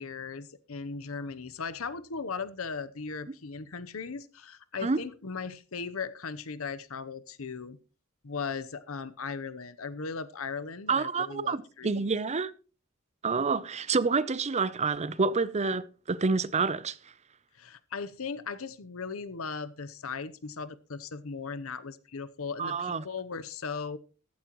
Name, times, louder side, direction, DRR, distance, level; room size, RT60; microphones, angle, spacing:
voice 1, 0.0-7.8 8.2-12.0 17.5-24.0, left 5 dB, 80° left, 0.8 m, -38 dB
voice 2, 10.9-12.5 13.2-17.0 22.6-23.0, right 4 dB, 35° right, 0.6 m, -28 dB
15.0 x 13.0 x 3.1 m
head